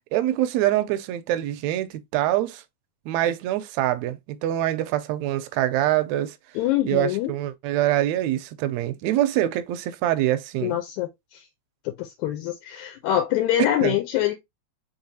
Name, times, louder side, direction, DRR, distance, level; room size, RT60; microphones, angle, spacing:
voice 1, 0.1-2.6 3.1-6.4 6.9-10.8 13.6-14.0, right 13 dB, 80° right, 1.7 m, -24 dB
voice 2, 6.6-7.3 10.6-11.4 11.9-14.3, left 12 dB, 80° left, 2.0 m, -25 dB
4.7 x 3.7 x 2.7 m
omnidirectional pair, 3.4 m